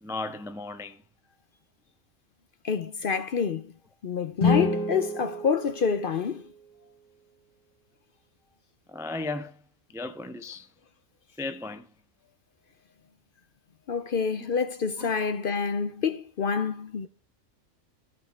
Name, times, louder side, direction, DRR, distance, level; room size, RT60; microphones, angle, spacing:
voice 1, 0.0-1.0 8.9-9.5 9.9-10.7 11.4-11.8 15.0-15.1, left 3 dB, 5° right, 0.4 m, -35 dB
voice 2, 2.6-3.7 4.0-6.5 13.9-17.1, left 6 dB, 55° left, 0.7 m, -27 dB
sound 1, 4.3-6.5, left 3 dB, 35° left, 3.9 m, -28 dB
14.5 x 6.9 x 3.4 m
omnidirectional pair, 1.3 m